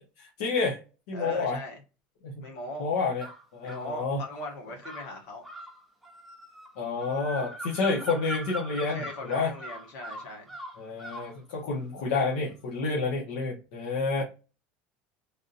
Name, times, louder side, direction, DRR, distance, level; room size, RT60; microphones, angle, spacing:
voice 1, 0.2-0.8 1.1-1.6 2.2-2.4 2.8-3.3 3.5-4.2 6.8-9.5 10.8-14.2, left 4 dB, 70° left, 1.0 m, -29 dB
voice 2, 1.1-1.8 2.4-2.9 3.6-5.4 8.9-10.5 14.1-14.2, left 1 dB, 55° left, 1.4 m, -39 dB
sound 1, 3.2-3.9 4.8-11.3, right 1 dB, ahead, 0.6 m, -41 dB
3.5 x 2.7 x 2.4 m
cardioid pair, 175°, 5 cm